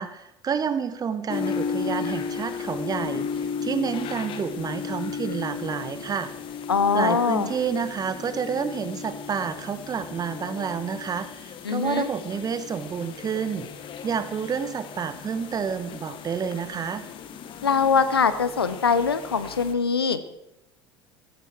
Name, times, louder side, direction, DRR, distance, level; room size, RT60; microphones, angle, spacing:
voice 1, 0.0-6.3 6.9-13.7 14.0-17.0, right 6 dB, 30° right, 12 dB, 1.3 m, -29 dB
sound 1, 1.3-19.7, left 6 dB, 45° left, 1.5 m, -35 dB
voice 2, 6.7-7.5 11.6-12.1 17.6-20.2, left 6 dB, 80° left, 13 dB, 0.9 m, -22 dB
15.0 x 14.0 x 4.6 m, 0.87 s
figure-of-eight pair, 65°, 13 cm